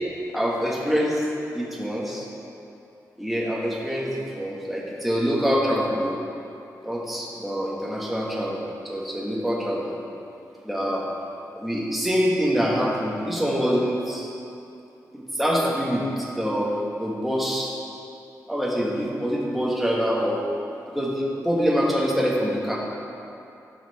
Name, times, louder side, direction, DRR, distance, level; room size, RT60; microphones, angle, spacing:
voice 1, 0.3-1.3 1.5-2.2 3.2-6.2 6.8-10.0 10.6-11.0 11.6-14.3 15.1-17.7 18.5-20.5 20.9-22.8, equal, ahead, -5 dB, 1.6 m, -25 dB
16.5 x 5.9 x 4.2 m, 2.7 s
wide cardioid pair, 180°, 7 cm